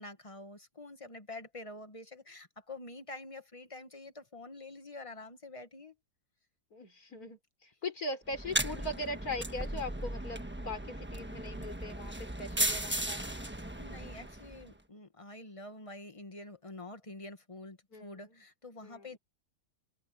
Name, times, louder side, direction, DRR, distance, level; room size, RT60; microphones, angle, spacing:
voice 1, 0.0-5.9 13.8-19.2, left 2 dB, 20° left, 1.3 m, -47 dB
voice 2, 6.7-13.2 17.9-18.4 18.8-19.1, left 2 dB, 60° left, 4.8 m, -40 dB
sound 1, 8.3-14.7, right 1 dB, 10° right, 1.0 m, -36 dB
open air
omnidirectional pair, 1.8 m